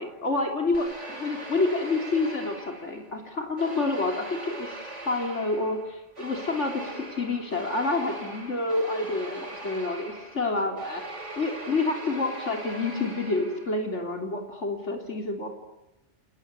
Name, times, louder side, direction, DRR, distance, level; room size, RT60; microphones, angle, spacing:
voice 1, 0.0-11.0 11.4-15.5, left 3 dB, 80° left, 4 dB, 3.6 m, -28 dB
sound 1, 0.7-3.2 3.6-13.9, right 2 dB, 80° right, 4.4 m, -41 dB
29.5 x 21.0 x 9.6 m, 0.97 s
omnidirectional pair, 1.2 m